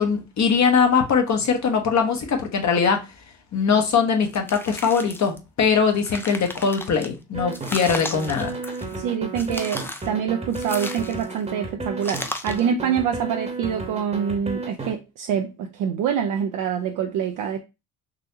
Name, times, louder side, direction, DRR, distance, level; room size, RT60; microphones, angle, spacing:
voice 1, 0.0-3.0 3.5-8.5, left 6 dB, 45° left, 1.0 m, -21 dB
sound 1, 4.3-5.4 5.8-7.1 7.5-9.0 9.4-10.1 10.5-11.4 12.0-12.7, left 2 dB, 5° left, 0.4 m, -35 dB
sound 2, 7.3-14.9, right 3 dB, 15° right, 1.0 m, -33 dB
voice 2, 8.9-17.6, right 8 dB, 55° right, 0.5 m, -26 dB
4.0 x 2.6 x 2.7 m
supercardioid pair, 75°, 38 cm